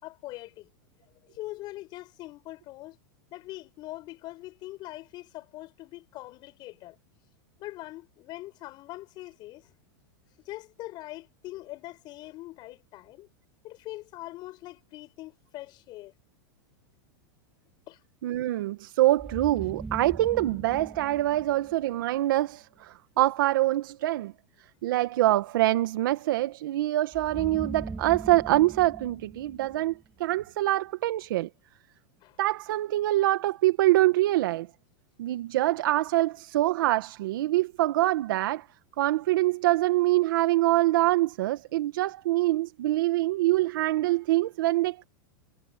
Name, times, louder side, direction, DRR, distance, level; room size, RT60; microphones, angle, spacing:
voice 1, 0.0-0.7 1.3-3.0 3.3-7.0 7.6-9.7 10.5-13.3 13.6-16.1 17.9-18.0 32.2-32.4, left 17 dB, 40° left, 7.5 m, -42 dB
voice 2, 18.2-24.3 24.8-31.5 32.4-34.7 35.2-38.6 39.0-45.0, right 16 dB, 75° right, 1.9 m, -25 dB
sound 1, 19.2-22.2 27.1-30.3, right 3 dB, 10° right, 2.5 m, -40 dB
supercardioid pair, 140°, 11 cm